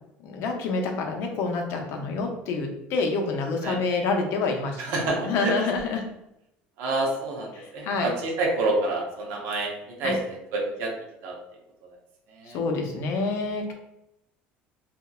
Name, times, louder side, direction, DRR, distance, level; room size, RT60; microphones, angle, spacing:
voice 1, 0.2-4.8 5.2-6.0 7.5-8.1 10.0-10.2 12.5-13.7, left 4 dB, 65° left, 2 dB, 0.5 m, -27 dB
voice 2, 4.8-5.7 6.8-9.7 10.0-10.2 10.5-10.9 11.2-11.4 12.3-12.6, right 2 dB, 70° right, 0 dB, 0.6 m, -27 dB
2.7 x 2.0 x 2.3 m, 0.84 s
supercardioid pair, 110°, 4 cm